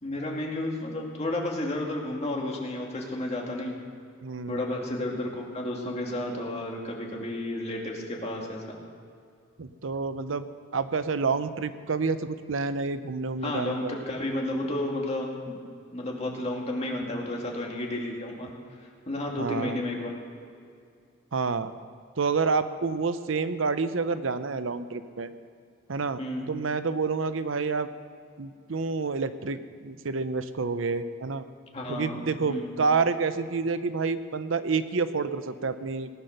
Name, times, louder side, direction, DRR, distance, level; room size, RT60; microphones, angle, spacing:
voice 1, 0.0-3.8 4.5-8.8 13.4-15.6 15.9-18.5 18.8-20.1 26.2-26.5 31.7-32.7, left 1 dB, 30° left, -1 dB, 2.3 m, -32 dB
voice 2, 4.2-4.6 9.6-10.5 10.7-14.0 19.4-19.8 21.3-21.7 22.2-25.3 25.9-26.2 26.5-27.9 28.4-31.4 31.9-36.1, right 4 dB, 70° right, 12 dB, 0.6 m, -28 dB
18.5 x 9.5 x 6.6 m, 2.4 s
head